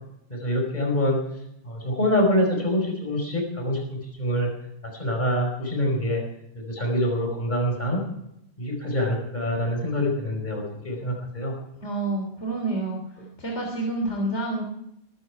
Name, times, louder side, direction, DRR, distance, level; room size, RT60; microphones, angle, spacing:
voice 1, 0.3-1.2 1.6-4.5 4.9-6.2 6.5-8.0 8.6-11.6, left 1 dB, 40° left, 1 dB, 5.1 m, -25 dB
voice 2, 11.8-13.0 13.4-14.6, right 2 dB, 85° left, 0 dB, 3.8 m, -28 dB
21.5 x 14.0 x 4.8 m, 0.79 s
omnidirectional pair, 1.1 m